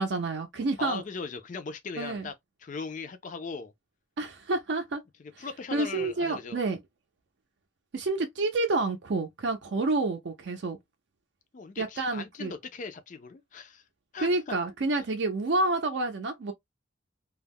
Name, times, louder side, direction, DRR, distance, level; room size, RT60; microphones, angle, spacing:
voice 1, 0.0-1.0 2.0-2.3 4.2-5.0 5.4-5.5 5.7-6.8 7.9-10.8 11.8-12.5 14.2-16.5, right 2 dB, 60° right, 0.5 m, -29 dB
voice 2, 0.8-2.3 2.6-3.7 5.2-6.6 11.5-13.8 14.1-14.5, left 4 dB, 40° left, 0.4 m, -39 dB
2.3 x 2.0 x 3.4 m
head